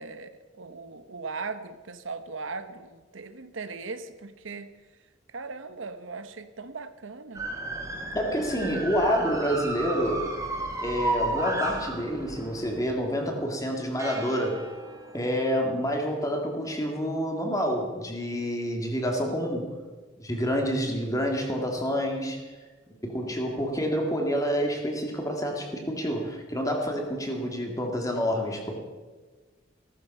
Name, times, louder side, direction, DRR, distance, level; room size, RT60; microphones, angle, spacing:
voice 1, 0.0-4.7 5.3-7.4 8.4-8.9 23.5-23.9, right 4 dB, 90° right, 11 dB, 1.0 m, -39 dB
sound 1, 7.3-12.9 14.0-15.6, right 2 dB, 15° right, 2.0 m, -33 dB
voice 2, 8.1-10.3 10.8-14.7 15.1-19.7 20.2-22.4 23.0-28.7, equal, 15° left, 2 dB, 2.3 m, -28 dB
15.0 x 14.0 x 5.5 m, 1.3 s
head